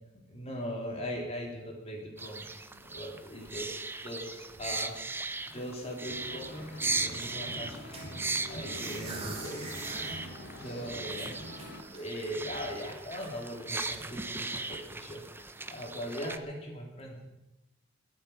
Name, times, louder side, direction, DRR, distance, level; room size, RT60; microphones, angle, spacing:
voice 1, 0.3-8.1 8.5-17.3, equal, 35° left, 0 dB, 3.6 m, -40 dB
sound 1, 2.2-16.4, right 3 dB, 10° right, 0.6 m, -38 dB
sound 2, 2.8-4.2 4.5-5.0 5.4-5.5 5.7-5.8 6.2-7.3 7.9-10.3 10.6-10.7 11.1-12.6 13.0-13.3, right 3 dB, 30° right, 3.6 m, -44 dB
sound 3, 6.0-11.8, equal, 60° left, 2.8 m, -45 dB
21.5 x 8.5 x 5.9 m, 0.98 s
head